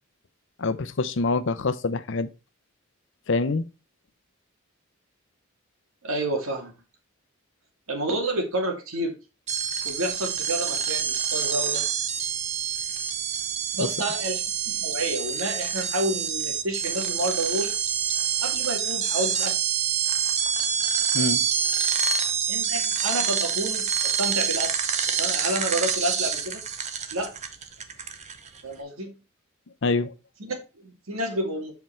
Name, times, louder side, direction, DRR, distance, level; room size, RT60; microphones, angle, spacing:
voice 1, 0.6-2.3 3.3-3.6 13.8-13.9 21.1-21.4 29.8-30.1, left 3 dB, 60° left, 0.6 m, -25 dB
voice 2, 6.0-6.7 7.9-9.1 9.8-11.9 13.7-14.4 14.7-17.7 18.4-19.6 22.5-24.7 25.2-26.6 27.1-27.4 28.6-29.2 30.4-31.7, right 1 dB, 90° right, 2.1 m, -29 dB
sound 1, 9.5-28.6, right 7 dB, 35° right, 0.8 m, -27 dB
7.7 x 4.6 x 4.3 m
head